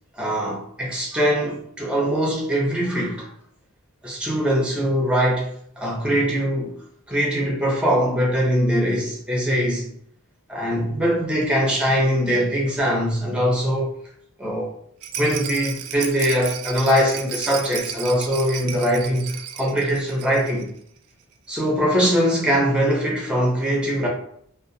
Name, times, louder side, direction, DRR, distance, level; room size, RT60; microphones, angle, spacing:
voice 1, 0.1-3.3 4.0-5.5 5.8-6.7 7.1-9.9 10.5-13.9 14.4-14.7 15.2-20.7 21.5-24.1, equal, 5° right, 0.5 m, -22 dB
Rattle, 15.0-20.7 21.0-21.1 21.3-21.4, right 9 dB, 70° right, 0.3 m, -34 dB
2.3 x 2.2 x 2.7 m
head